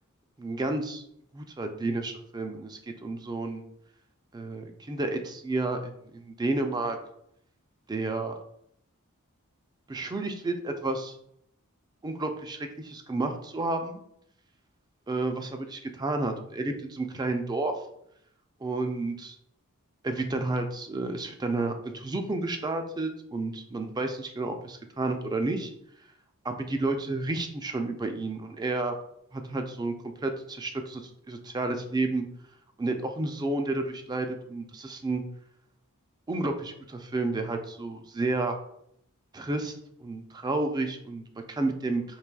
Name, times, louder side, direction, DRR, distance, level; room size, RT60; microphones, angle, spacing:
voice 1, 0.4-1.0 1.3-3.6 4.3-7.0 7.9-8.4 9.9-11.2 12.0-14.0 15.1-17.7 18.6-19.4 20.0-25.7 26.4-29.0 29.3-32.3 32.8-35.2 36.3-38.6 39.3-39.7 40.0-41.2 41.5-42.0, right 2 dB, 20° right, 6 dB, 0.3 m, -31 dB
4.7 x 3.0 x 2.2 m, 0.74 s
head